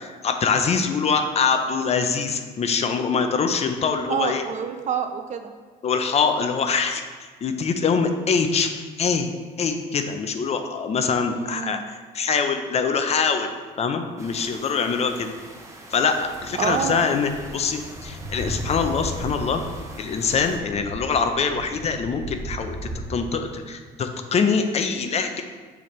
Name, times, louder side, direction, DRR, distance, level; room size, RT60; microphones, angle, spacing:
voice 1, 0.0-4.4 5.8-7.0 7.4-9.3 9.6-15.3 15.9-19.6 20.0-25.4, left 5 dB, 40° left, 7 dB, 0.6 m, -24 dB
voice 2, 4.1-5.5 11.3-11.8 16.6-17.2, right 7 dB, 45° right, 8 dB, 0.5 m, -27 dB
sound 1, 14.2-20.6, left 1 dB, 15° right, 0.9 m, -40 dB
sound 2, 17.4-23.0, right 1 dB, 20° left, 1.4 m, -36 dB
6.9 x 4.3 x 3.1 m, 1.4 s
cardioid pair, 110°, 17 cm